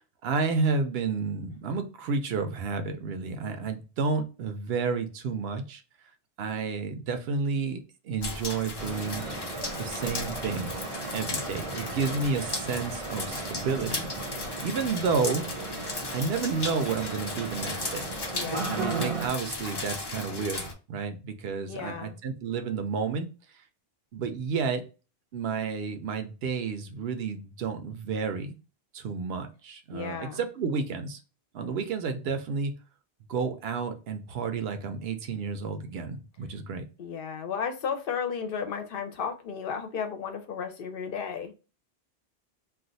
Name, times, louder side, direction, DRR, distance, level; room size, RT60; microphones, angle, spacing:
voice 1, 0.2-5.8 6.4-9.3 9.8-10.7 11.1-15.5 16.1-18.0 18.7-23.3 24.1-24.9 25.3-28.5 28.9-31.2 31.5-32.7 33.3-36.8, right 5 dB, 75° right, 7 dB, 0.8 m, -31 dB
sound 1, 8.2-20.7, left 3 dB, 40° left, 0.4 m, -36 dB
sound 2, 8.8-19.3, right 3 dB, 35° right, 0.6 m, -36 dB
voice 2, 18.3-18.7 21.7-22.2 29.9-30.4 37.0-41.5, left 6 dB, 65° left, 6 dB, 0.7 m, -34 dB
2.4 x 2.3 x 3.9 m, 0.32 s
omnidirectional pair, 1.0 m